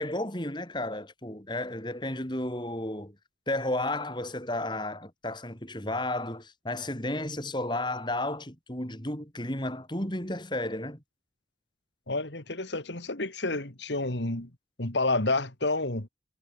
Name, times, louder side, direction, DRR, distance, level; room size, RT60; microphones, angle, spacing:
voice 1, 0.0-3.2 3.5-11.0, left 1 dB, 25° left, 5.9 m, -33 dB
voice 2, 12.1-14.5 14.8-16.1, left 2 dB, 80° left, 3.1 m, -29 dB
head